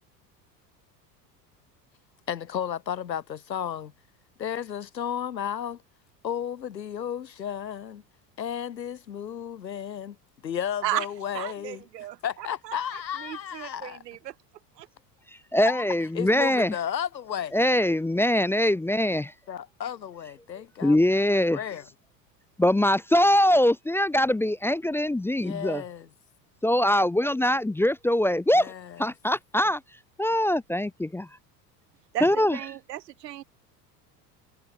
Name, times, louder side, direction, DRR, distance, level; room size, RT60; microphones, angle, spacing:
voice 1, 2.3-3.9 4.4-5.8 6.2-8.0 8.4-10.2 10.4-11.8 12.2-14.0 15.6-15.8 16.1-17.6 19.5-21.0 21.5-21.9 25.4-26.1 28.5-29.0, left 9 dB, 85° left, 1.4 m, -33 dB
voice 2, 11.3-14.4 14.8-14.9 32.1-33.4, right 13 dB, 75° right, 2.0 m, -35 dB
voice 3, 15.5-16.7 17.5-19.3 20.8-21.6 22.6-25.8 26.6-28.7 29.0-29.8 30.2-31.3 32.2-32.6, left 1 dB, 5° left, 0.5 m, -23 dB
figure-of-eight pair, 75°, 49 cm